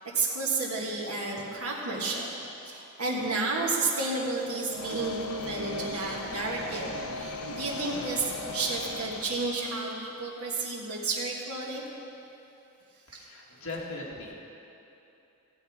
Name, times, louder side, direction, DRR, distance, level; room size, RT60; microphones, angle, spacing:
voice 1, 0.1-2.3 2.6-11.8 13.1-13.3 13.6-13.8, right 3 dB, 70° right, -4 dB, 1.6 m, -31 dB
sound 1, 4.7-9.9, left 2 dB, 85° left, 0.9 m, -38 dB
voice 2, 13.1-14.4, left 2 dB, 65° left, -3 dB, 2.0 m, -39 dB
14.5 x 7.9 x 5.0 m, 2.9 s
head